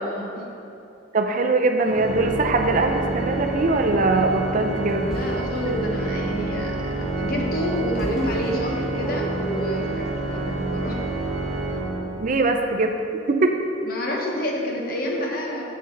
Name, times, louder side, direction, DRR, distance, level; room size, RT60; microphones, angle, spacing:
voice 1, 0.0-0.4 5.1-6.8 7.2-11.0 13.8-15.6, left 1 dB, 50° left, -1 dB, 1.1 m, -28 dB
voice 2, 1.1-5.1 12.2-12.9 13.3-13.5, right 3 dB, 40° right, 5 dB, 0.4 m, -21 dB
Organ, 1.8-12.6, right 2 dB, 70° right, 1.0 m, -28 dB
sound 1, 4.9-5.6 7.2-9.5, equal, ahead, 1.2 m, -36 dB
7.7 x 6.6 x 3.8 m, 2.7 s
head